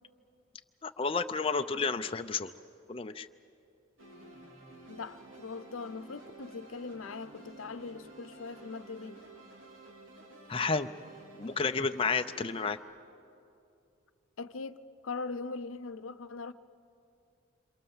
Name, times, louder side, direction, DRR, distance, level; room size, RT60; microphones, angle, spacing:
voice 1, 0.8-2.5 2.9-3.3 10.5-10.9 11.3-12.8, left 4 dB, 25° left, 0.5 m, -31 dB
sound 1, 4.0-12.8, right 2 dB, 75° right, 4.5 m, -52 dB
voice 2, 4.8-9.2 14.4-16.5, left 4 dB, 90° left, 0.8 m, -41 dB
27.5 x 26.0 x 7.3 m
head